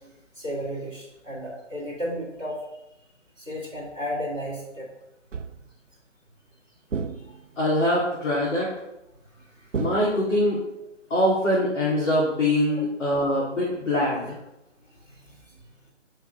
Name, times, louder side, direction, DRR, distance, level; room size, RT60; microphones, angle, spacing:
voice 1, 0.0-2.6 3.4-4.9 9.4-9.8 12.7-12.8 15.1-15.4, equal, 15° right, -8 dB, 2.1 m, -34 dB
sound 1, 5.3-5.8 6.9-7.7 9.7-10.6, right 5 dB, 80° right, 0.7 m, -33 dB
voice 2, 7.6-8.7 9.8-10.6 11.1-14.3, left 1 dB, 5° left, -12 dB, 1.1 m, -23 dB
7.5 x 3.3 x 5.4 m, 0.89 s
figure-of-eight pair, 155°, 37 cm